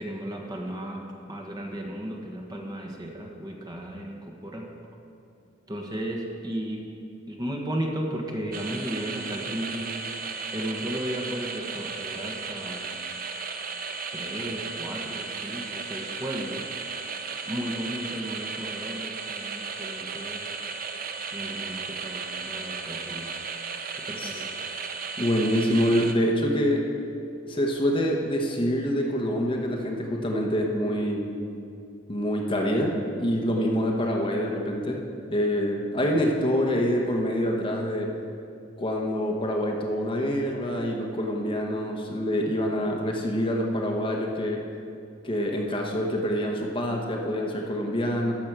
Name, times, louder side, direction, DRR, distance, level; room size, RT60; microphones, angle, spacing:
voice 1, 0.0-4.7 5.7-6.8 7.3-9.9 10.5-12.9 14.1-16.6 17.5-20.5 21.3-23.3 24.0-24.5, equal, 20° right, 0 dB, 1.2 m, -34 dB
sound 1, 8.5-26.1, right 5 dB, 50° right, 0.6 m, -35 dB
voice 2, 25.2-26.9 27.5-31.3 32.1-35.0 35.3-38.1 38.8-44.6 45.2-48.3, equal, 30° left, 0 dB, 1.1 m, -26 dB
13.5 x 6.2 x 6.1 m, 2.5 s
head